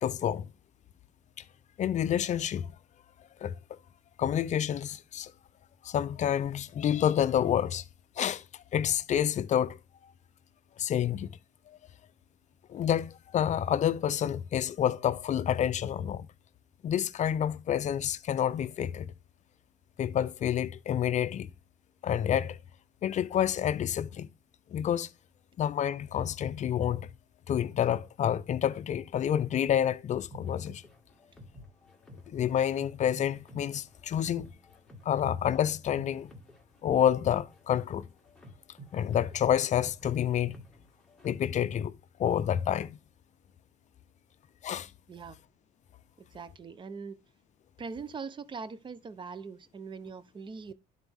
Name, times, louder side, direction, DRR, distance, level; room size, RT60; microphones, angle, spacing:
voice 1, 0.0-0.5 1.8-2.7 3.4-3.8 4.2-5.3 5.8-7.8 8.2-9.8 10.0-10.1 10.8-11.3 11.7-11.8 12.7-16.3 16.8-19.1 20.0-21.5 22.0-22.6 23.0-24.3 24.7-25.1 25.6-27.1 27.5-30.8 32.3-34.5 35.0-36.3 36.8-38.1 38.9-40.6 41.2-41.9 42.2-43.0 44.6-44.9, left 9 dB, 45° left, 0.5 m, -28 dB
sound 1, 30.3-41.6, equal, ahead, 1.8 m, -53 dB
voice 2, 46.3-47.2 47.8-50.7, right 5 dB, 30° right, 0.6 m, -41 dB
11.5 x 4.0 x 3.5 m
cardioid pair, 110°, 17 cm